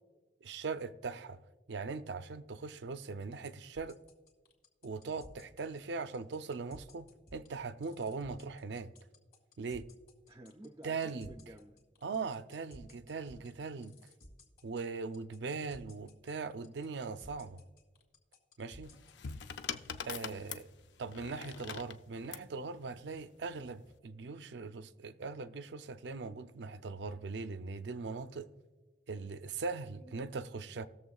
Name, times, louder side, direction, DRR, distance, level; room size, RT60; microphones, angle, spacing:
voice 1, 0.4-1.4 1.7-4.0 4.8-7.1 7.3-8.9 9.6-9.8 10.8-11.3 12.0-13.9 14.6-17.6 18.6-18.9 20.0-20.6 21.0-28.5 29.1-30.9, right 4 dB, 80° right, 0.5 m, -40 dB
sound 1, 3.8-19.5, left 1 dB, 55° left, 2.1 m, -56 dB
voice 2, 10.3-11.8 20.2-20.5 30.0-30.1, right 1 dB, 20° right, 0.4 m, -53 dB
sound 2, 18.8-22.5 23.6-23.9, left 7 dB, 80° left, 0.5 m, -43 dB
19.5 x 7.0 x 2.3 m
head